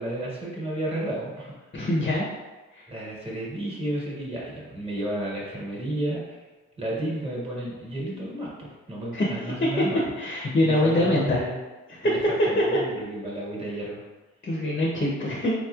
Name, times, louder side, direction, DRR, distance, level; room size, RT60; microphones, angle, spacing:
voice 1, 0.0-1.5 2.9-6.4 6.8-10.1 10.6-11.6 12.0-14.0, right 1 dB, 20° right, -5 dB, 1.4 m, -32 dB
voice 2, 1.7-2.3 2.7-2.9 9.1-9.3 9.6-9.7 10.2-11.4 12.0-12.1 14.4-15.5, left 1 dB, 30° left, -3 dB, 0.7 m, -24 dB
4.0 x 2.9 x 2.4 m, 1.2 s
cardioid pair, 80°, 31 cm